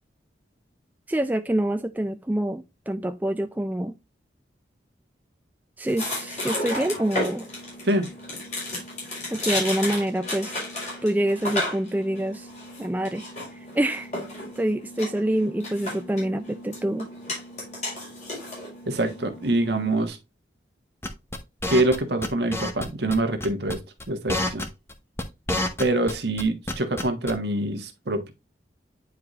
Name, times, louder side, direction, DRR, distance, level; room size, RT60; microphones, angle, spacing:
voice 1, 1.1-3.9 5.8-7.5 9.3-10.6 11.0-12.5 12.8-13.3 13.5-14.1 14.6-17.1, right 1 dB, 10° right, 0.3 m, -26 dB
sound 1, 5.9-20.1, left 1 dB, 40° left, 4.2 m, -34 dB
voice 2, 18.9-20.2 21.7-23.8 24.1-24.6 25.8-28.3, right 2 dB, 65° right, 1.3 m, -25 dB
sound 2, 21.0-22.0 22.2-22.9 23.1-23.2 23.4-23.7 24.0-26.1 26.4-27.3, left 1 dB, 15° left, 0.7 m, -28 dB
9.5 x 4.8 x 2.4 m
head